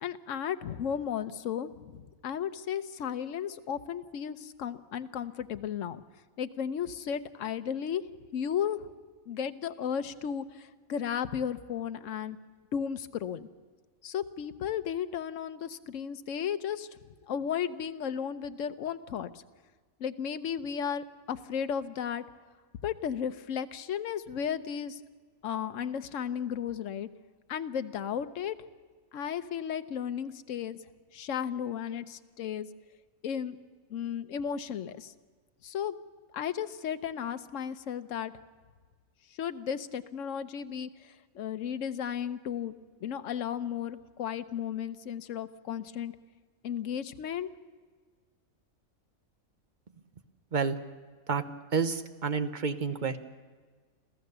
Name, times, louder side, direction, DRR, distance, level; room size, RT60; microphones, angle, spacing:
voice 1, 0.0-6.0 6.4-8.0 8.3-8.9 9.3-12.4 12.7-13.5 14.0-16.9 17.3-19.3 20.0-22.2 22.8-25.0 25.4-27.1 27.5-28.6 29.1-30.8 31.1-32.7 33.2-33.6 33.9-35.1 35.6-36.0 36.3-38.3 39.4-42.7 43.0-46.1 46.6-47.5, left 8 dB, 65° left, 11 dB, 1.1 m, -34 dB
voice 2, 51.7-53.2, right 5 dB, 40° right, 10 dB, 1.0 m, -29 dB
27.0 x 15.0 x 6.8 m, 1.5 s
omnidirectional pair, 1.4 m